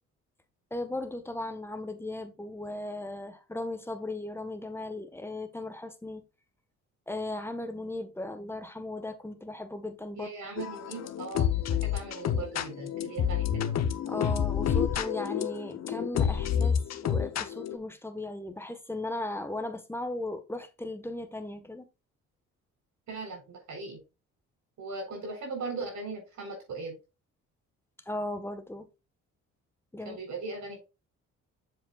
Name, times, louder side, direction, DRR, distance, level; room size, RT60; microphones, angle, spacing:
voice 1, 0.7-6.2 7.1-10.3 14.0-21.8 28.1-28.9 29.9-30.2, left 2 dB, 10° left, 1.3 m, -37 dB
voice 2, 10.1-13.8 23.1-24.0 24.8-27.0 30.0-30.8, right 3 dB, 70° right, 4.2 m, -39 dB
sound 1, 10.6-17.8, left 8 dB, 60° left, 0.9 m, -29 dB
7.5 x 7.2 x 2.5 m
cardioid pair, 90°, 30 cm